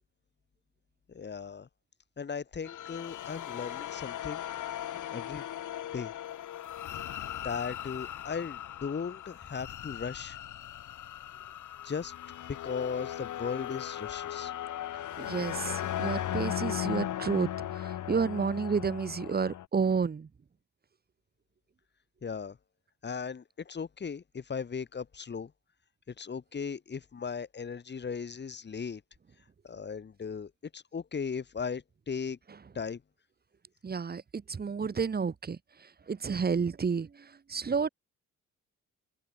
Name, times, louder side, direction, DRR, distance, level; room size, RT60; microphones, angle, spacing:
voice 1, 1.1-1.7 2.2-4.4 5.1-5.4 5.9-6.1 7.4-10.4 11.8-12.1 12.5-14.5 22.2-22.6 23.0-25.5 26.1-29.0 29.6-32.4 32.7-33.0, left 6 dB, 35° left, 6.7 m, -37 dB
sound 1, 2.6-19.7, left 12 dB, 80° left, 3.5 m, -38 dB
voice 2, 15.2-20.3 33.8-37.9, right 5 dB, 30° right, 3.4 m, -31 dB
open air
wide cardioid pair, 155°, 30 cm